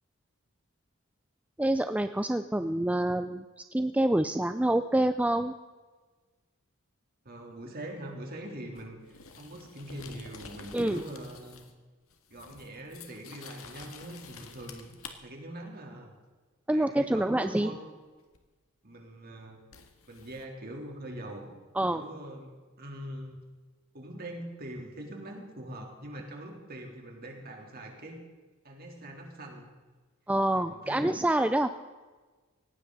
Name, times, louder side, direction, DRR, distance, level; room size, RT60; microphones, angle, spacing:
voice 1, 1.6-3.4 3.7-5.5 10.7-11.0 16.7-17.7 21.7-22.0 30.3-31.8, right 1 dB, 5° right, 9 dB, 0.4 m, -27 dB
voice 2, 7.2-11.6 12.3-14.9 15.2-16.1 16.7-17.8 18.8-19.6 20.1-21.5 21.9-23.4 23.9-28.2 28.6-29.6 30.5-31.1, right 1 dB, 45° right, 1 dB, 3.4 m, -43 dB
sound 1, 8.7-11.8 12.1-15.1 18.3-18.5 19.7-20.4, left 5 dB, 80° left, 1.9 m, -49 dB
19.0 x 15.5 x 4.1 m, 1.3 s
head